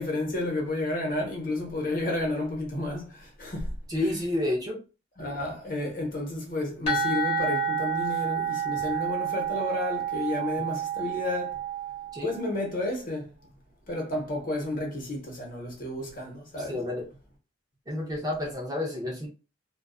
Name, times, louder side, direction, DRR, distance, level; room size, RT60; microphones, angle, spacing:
voice 1, 0.0-3.7 5.2-11.6 12.2-13.3 13.9-16.8, left 2 dB, 45° left, 0.8 m, -31 dB
voice 2, 3.9-4.8 12.1-12.3 16.6-17.0 17.9-19.3, left 1 dB, 20° right, 0.5 m, -30 dB
sound 1, 6.9-12.5, right 6 dB, 30° left, 1.1 m, -29 dB
2.5 x 2.2 x 2.3 m
head